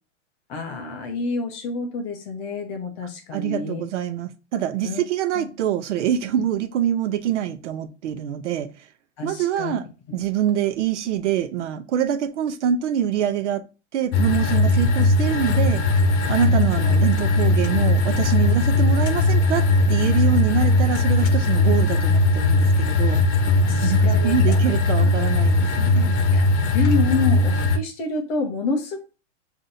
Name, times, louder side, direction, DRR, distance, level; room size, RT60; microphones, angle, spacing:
voice 1, 0.5-3.8 4.8-5.0 5.4-5.5 9.2-9.7 16.4-16.8 23.6-24.6 25.0-25.1 26.3-26.4 26.7-29.0, left 4 dB, 15° left, 0.4 m, -28 dB
voice 2, 3.3-8.7 9.2-9.8 10.1-13.6 13.9-15.8 16.3-23.2 23.7-26.2, right 9 dB, 80° right, 0.7 m, -25 dB
sound 1, 14.1-27.8, left 2 dB, 70° left, 0.8 m, -19 dB
5.6 x 2.6 x 2.5 m
supercardioid pair, 160°, 36 cm